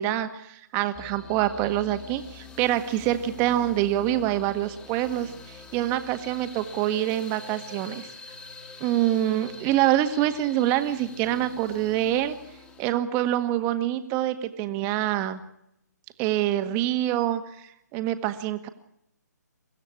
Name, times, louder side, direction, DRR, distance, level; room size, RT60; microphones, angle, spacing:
voice 1, 0.0-8.1 8.8-12.4 12.8-15.4 16.2-18.7, right 13 dB, 20° right, 9 dB, 1.7 m, -26 dB
sound 1, 0.9-12.9, left 4 dB, 10° left, 2.4 m, -45 dB
23.5 x 15.5 x 8.4 m, 0.79 s
hypercardioid pair, 145°, 10 cm